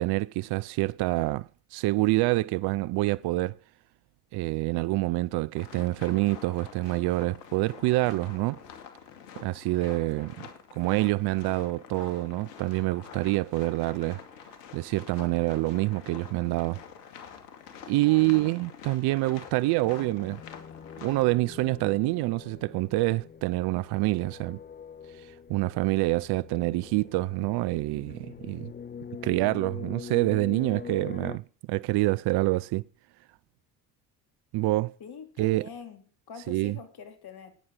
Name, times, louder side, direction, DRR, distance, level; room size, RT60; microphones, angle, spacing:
voice 1, 0.0-3.6 4.3-8.6 9.4-14.2 14.7-16.8 17.9-20.4 21.0-24.6 25.1-28.7 29.2-31.4 31.7-32.8 34.5-34.9 35.4-35.7 36.5-36.8, right 20 dB, 55° right, 0.6 m, -27 dB
sound 1, 5.5-21.4, left 7 dB, 80° left, 2.4 m, -47 dB
voice 2, 18.0-18.4 35.0-37.5, left 7 dB, 50° left, 3.6 m, -45 dB
sound 2, 19.8-31.4, left 6 dB, 20° left, 0.8 m, -44 dB
14.0 x 9.5 x 7.7 m
hypercardioid pair, 65°, 48 cm